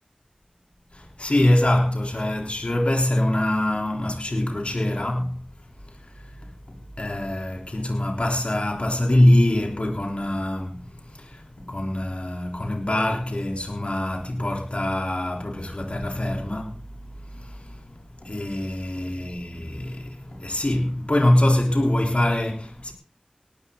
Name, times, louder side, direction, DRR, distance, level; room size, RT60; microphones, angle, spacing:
voice 1, 0.9-5.4 5.9-6.5 7.0-22.9, left 1 dB, 55° left, 3.7 m, -24 dB
18.0 x 13.5 x 3.9 m
wide cardioid pair, 45°, 2 cm